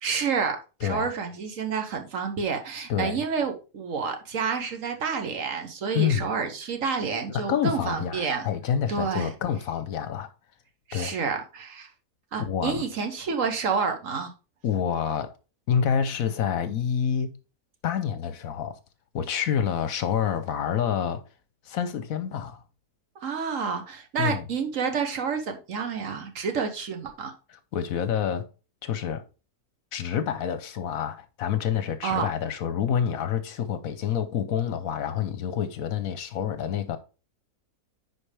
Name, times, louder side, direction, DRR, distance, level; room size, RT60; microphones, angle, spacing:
voice 1, 0.0-8.5 8.9-9.3 10.9-11.9 12.3-14.3 23.2-27.3 32.0-32.3, right 5 dB, 60° right, 1.3 m, -29 dB
voice 2, 0.8-1.1 2.9-3.2 5.9-6.3 7.3-10.3 10.9-11.2 12.4-12.8 14.6-15.3 15.7-17.3 17.8-18.8 19.1-21.2 21.6-22.6 24.2-24.4 27.5-28.5 28.8-29.2 29.9-37.0, left 8 dB, 65° left, 1.0 m, -28 dB
10.0 x 4.4 x 3.3 m
omnidirectional pair, 1.7 m